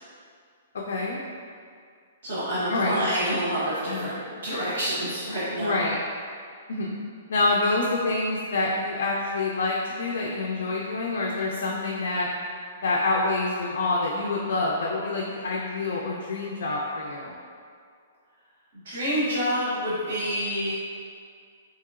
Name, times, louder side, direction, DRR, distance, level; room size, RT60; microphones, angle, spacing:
voice 1, 0.9-1.2 2.7-3.0 3.9-4.0 5.6-6.0 6.7-7.0 7.3-12.3 12.8-17.3, left 2 dB, 75° left, -3 dB, 0.3 m, -27 dB
voice 2, 2.2-4.2 4.4-5.8 18.7-20.7, equal, 65° right, -10 dB, 0.9 m, -27 dB
2.9 x 2.8 x 2.4 m, 2.2 s
hypercardioid pair, 175°, 0 cm